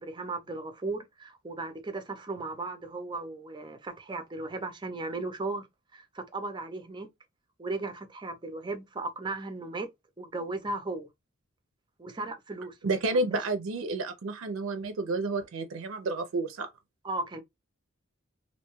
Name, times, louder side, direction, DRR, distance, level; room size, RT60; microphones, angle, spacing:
voice 1, 0.0-5.7 5.9-7.1 7.6-9.9 10.2-11.1 12.0-12.8 13.0-13.4 17.0-17.4, right 2 dB, 25° right, 0.5 m, -36 dB
voice 2, 12.8-16.7, right 2 dB, 85° right, 0.5 m, -30 dB
2.6 x 2.2 x 3.0 m
head